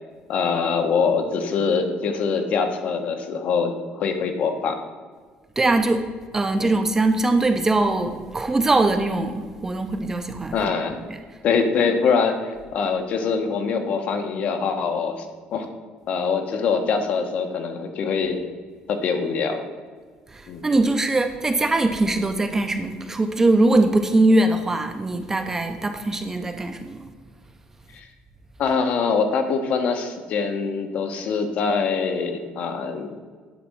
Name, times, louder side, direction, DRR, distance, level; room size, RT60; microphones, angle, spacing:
voice 1, 0.3-4.8 6.6-6.7 10.5-11.0 11.4-15.7 16.1-18.4 18.9-19.6 20.5-20.6 27.9-28.1 28.6-33.2, left 5 dB, 50° left, 6 dB, 1.1 m, -24 dB
voice 2, 5.6-6.0 6.3-10.5 20.3-27.1, right 2 dB, 15° right, 7 dB, 0.5 m, -21 dB
10.0 x 4.2 x 7.6 m, 1.6 s
cardioid pair, 165°, 3 cm